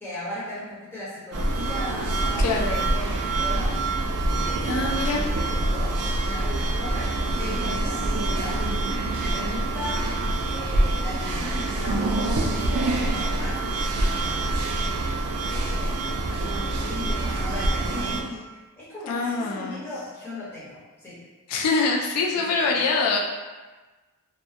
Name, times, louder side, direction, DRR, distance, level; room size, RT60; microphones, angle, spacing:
voice 1, 0.0-3.8 4.3-5.9 6.2-8.6 9.1-10.0 10.4-15.0 15.5-15.9 16.2-21.2 22.3-22.8, left 1 dB, 10° left, -12 dB, 0.9 m, -37 dB
sound 1, 1.3-18.2, right 2 dB, 80° right, 0.4 m, -25 dB
voice 2, 2.4-2.8 4.6-5.2 19.1-19.8 21.5-23.2, left 3 dB, 85° left, -1 dB, 0.3 m, -24 dB
2.1 x 2.1 x 2.7 m, 1.2 s
head